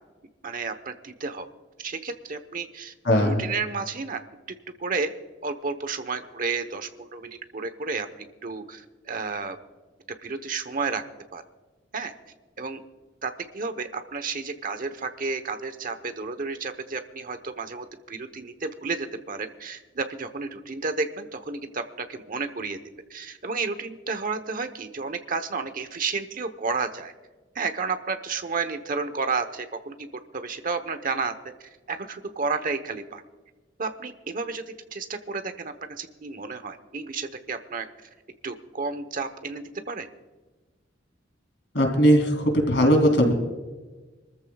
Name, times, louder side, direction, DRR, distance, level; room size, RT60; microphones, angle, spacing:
voice 1, 0.4-1.5 1.8-4.2 4.8-5.1 5.4-9.6 10.2-11.0 11.3-11.4 11.9-12.1 12.6-12.8 13.2-22.8 23.1-27.1 27.5-30.1 30.3-31.3 31.6-33.2 33.8-34.6 34.9-38.1 38.4-40.1, right 4 dB, 50° right, 9 dB, 1.0 m, -31 dB
voice 2, 3.0-3.4 41.7-43.3, equal, 70° left, 2 dB, 3.1 m, -19 dB
26.0 x 14.0 x 2.4 m, 1.3 s
head